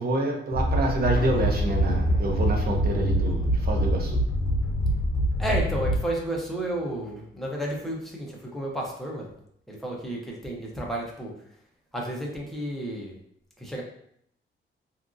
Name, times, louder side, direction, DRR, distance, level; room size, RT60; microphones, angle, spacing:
voice 1, 0.0-4.2, right 2 dB, 50° right, 1 dB, 0.5 m, -27 dB
sound 1, 0.5-6.3, equal, 80° left, 0.5 m, -25 dB
sound 2, 1.2-6.8 7.1-7.2, left 1 dB, 50° left, 0.8 m, -33 dB
voice 2, 5.4-9.3 9.7-11.3 11.9-13.1 13.6-13.8, right 1 dB, ahead, -3 dB, 0.5 m, -32 dB
2.8 x 2.4 x 2.4 m, 0.70 s
wide cardioid pair, 170°, 21 cm